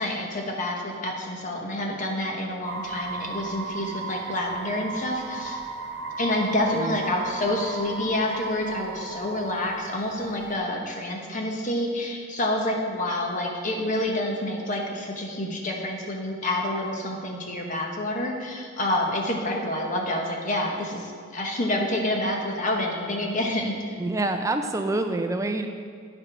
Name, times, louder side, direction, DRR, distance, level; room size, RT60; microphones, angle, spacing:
voice 1, 0.0-5.6 6.2-24.0, left 1 dB, 35° left, 1 dB, 1.1 m, -28 dB
sound 1, 2.6-10.6, right 3 dB, 55° right, 0.7 m, -35 dB
voice 2, 24.0-25.7, right 2 dB, 15° right, 6 dB, 0.4 m, -26 dB
9.6 x 5.0 x 5.9 m, 2.1 s
head